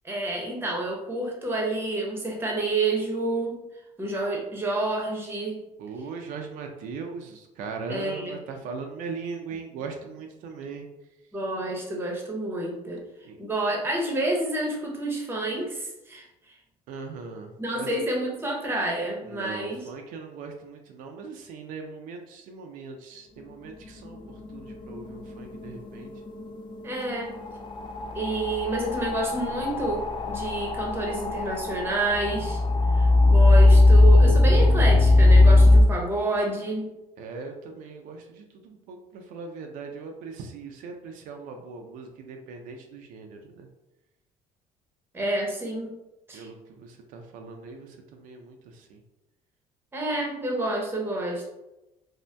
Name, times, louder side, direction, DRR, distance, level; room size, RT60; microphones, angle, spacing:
voice 1, 0.0-3.6 4.0-5.6 7.9-8.3 11.3-13.0 13.4-16.3 17.6-19.8 26.8-27.4 28.1-32.6 32.9-36.9 45.1-45.9 46.3-46.5 49.9-51.5, right 2 dB, 15° right, -1 dB, 0.7 m, -29 dB
voice 2, 5.8-10.9 13.2-13.4 16.9-18.0 19.2-26.1 37.2-43.7 46.3-49.0, right 4 dB, 75° right, 3 dB, 0.4 m, -40 dB
sound 1, 24.1-24.2 24.5-35.8, left 2 dB, 35° left, 0.4 m, -19 dB
2.6 x 2.1 x 3.2 m, 0.95 s
cardioid pair, 115°, 14 cm